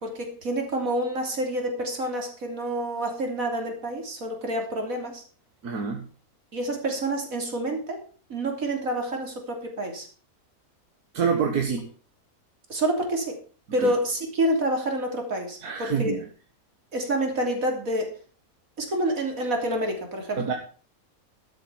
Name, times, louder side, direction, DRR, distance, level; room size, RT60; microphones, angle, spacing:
voice 1, 0.0-5.2 6.5-8.0 8.3-10.1 12.7-13.4 13.7-16.1 16.9-18.1 18.8-20.4, right 1 dB, 65° right, 3 dB, 3.6 m, -28 dB
voice 2, 5.6-6.1 11.1-11.9 13.8-13.9 15.6-16.2 20.4-20.5, right 6 dB, 80° right, 3 dB, 2.0 m, -26 dB
12.5 x 8.3 x 5.7 m, 0.40 s
omnidirectional pair, 1.6 m